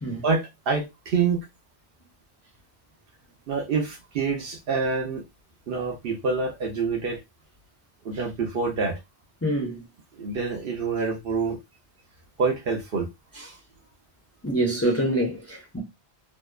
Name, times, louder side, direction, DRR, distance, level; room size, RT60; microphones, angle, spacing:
voice 1, 0.1-1.4 3.5-5.2 5.7-7.2 8.1-8.9 10.2-11.6 12.4-13.1, right 4 dB, 65° right, 0.7 m, -26 dB
voice 2, 9.4-9.8 13.3-13.5 14.4-15.8, right 1 dB, 15° left, 0.6 m, -26 dB
2.7 x 2.1 x 2.2 m
omnidirectional pair, 1.1 m